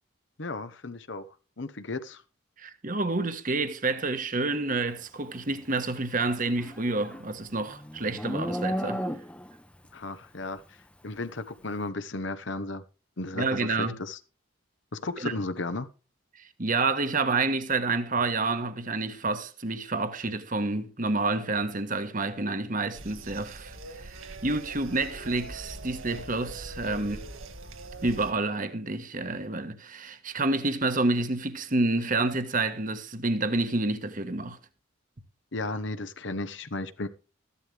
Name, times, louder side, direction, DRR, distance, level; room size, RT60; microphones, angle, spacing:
voice 1, 0.4-1.3 1.6-2.2 9.9-10.6 11.0-12.8 13.2-14.2 14.9-15.9 26.9-27.1 35.5-37.1, left 2 dB, 60° left, 1.0 m, -34 dB
voice 2, 2.6-9.0 13.3-13.9 15.2-15.3 16.3-27.2 28.0-34.6, right 3 dB, 40° right, 1.3 m, -29 dB
Livestock farm animals working animals, 6.4-9.6, equal, 5° left, 0.8 m, -33 dB
sound 1, 22.9-28.3, right 2 dB, 85° right, 1.8 m, -42 dB
14.5 x 11.5 x 3.4 m
head